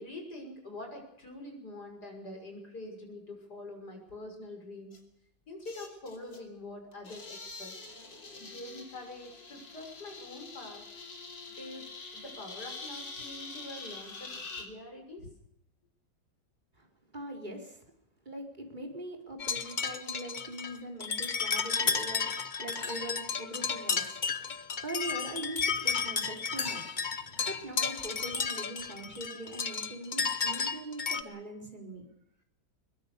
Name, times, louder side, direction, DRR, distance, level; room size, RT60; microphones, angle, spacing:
voice 1, 0.0-5.0 5.5-7.7 8.3-10.9 11.6-11.9 12.1-15.3, left 2 dB, 55° left, 3 dB, 6.9 m, -45 dB
sound 1, 4.9-5.0 5.7-6.5 6.9-14.7, left 3 dB, 75° left, 3.6 m, -45 dB
voice 2, 17.1-17.8 18.3-22.3 22.6-24.2 24.8-32.1, right 1 dB, 25° right, 2 dB, 4.4 m, -42 dB
sound 2, 19.4-31.2, left 5 dB, 35° left, 0.8 m, -33 dB
22.0 x 21.0 x 6.8 m, 0.76 s
omnidirectional pair, 2.0 m